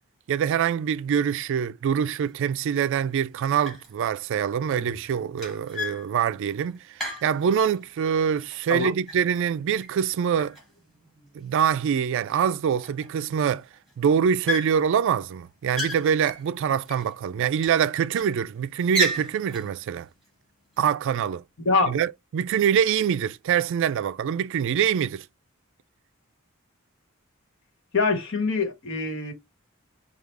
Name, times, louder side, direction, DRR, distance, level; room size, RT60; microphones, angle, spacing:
voice 1, 0.3-10.6 11.3-13.6 14.0-20.1 20.8-21.4 21.9-25.2, right 8 dB, 65° right, 0.3 m, -24 dB
sound 1, 2.3-2.4 2.8-3.3 3.6-4.1 4.3-8.0 8.4-10.1 10.4-11.3 11.9-12.0 12.3-12.4 12.7-13.5 13.7-14.0 14.5-15.1 15.5-17.1 17.5-18.3 18.8-19.7, equal, ahead, 2.3 m, -34 dB
voice 2, 21.6-22.0 27.9-29.3, left 3 dB, 65° left, 1.4 m, -24 dB
4.7 x 2.3 x 3.4 m
head